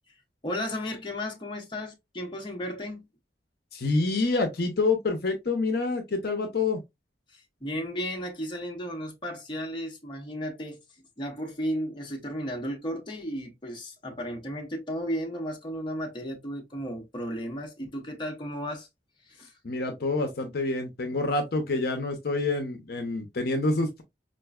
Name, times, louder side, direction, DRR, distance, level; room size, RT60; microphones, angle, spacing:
voice 1, 0.4-3.0 7.3-10.8 11.2-18.9 19.3-19.5, equal, 30° left, 0.9 m, -34 dB
voice 2, 3.7-6.8 19.6-24.0, left 3 dB, 60° left, 0.7 m, -27 dB
4.5 x 2.5 x 2.3 m
head